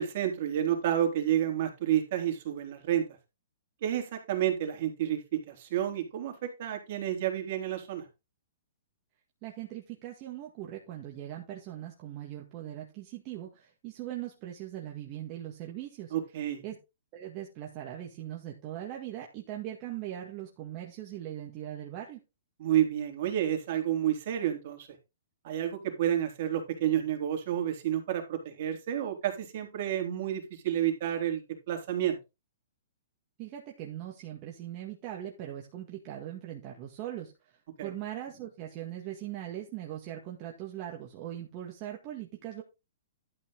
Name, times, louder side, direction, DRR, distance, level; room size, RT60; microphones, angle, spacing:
voice 1, 0.0-3.0 3.8-8.1 16.1-16.6 22.6-24.9 25.4-32.2 37.8-37.9, right 11 dB, 55° right, 4 dB, 3.6 m, -30 dB
voice 2, 9.4-16.1 16.6-16.8 17.1-22.2 33.4-37.3 37.8-42.6, right 12 dB, 40° right, 0 dB, 1.9 m, -40 dB
12.0 x 5.4 x 4.0 m, 0.26 s
hypercardioid pair, 130°, 0 cm